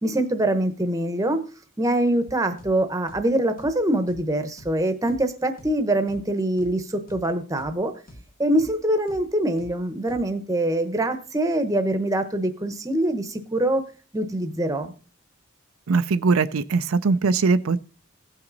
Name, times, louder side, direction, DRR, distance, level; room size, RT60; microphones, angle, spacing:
voice 1, 0.0-1.4 1.8-7.9 8.4-13.8 14.1-14.9, right 1 dB, 15° right, 8 dB, 0.9 m, -24 dB
sound 1, 2.6-2.7 3.1-3.2 3.6-3.7 4.1-4.2 4.6-4.7 5.1-5.2 5.6-5.7 6.1-6.2 6.6-6.7 7.1-7.2 7.6-7.7 8.1-8.2 8.6-8.7 9.1-9.2 9.6-9.7 10.1-10.2, equal, 45° left, 1.1 m, -45 dB
voice 2, 15.9-17.8, right 4 dB, 75° right, 11 dB, 0.5 m, -21 dB
16.0 x 5.8 x 4.0 m, 0.37 s
head